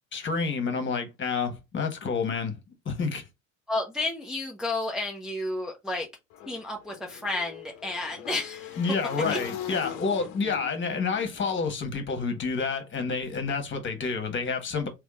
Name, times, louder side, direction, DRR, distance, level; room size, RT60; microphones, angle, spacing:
voice 1, 0.1-2.6 2.8-3.2 8.8-14.9, left 4 dB, 30° left, 1.5 m, -29 dB
voice 2, 3.7-6.1 6.5-8.8 9.3-9.4, left 2 dB, ahead, 0.8 m, -31 dB
Motorcycle / Engine, 6.3-12.4, left 9 dB, 50° left, 0.9 m, -41 dB
3.5 x 3.3 x 3.6 m
figure-of-eight pair, 65°, 38 cm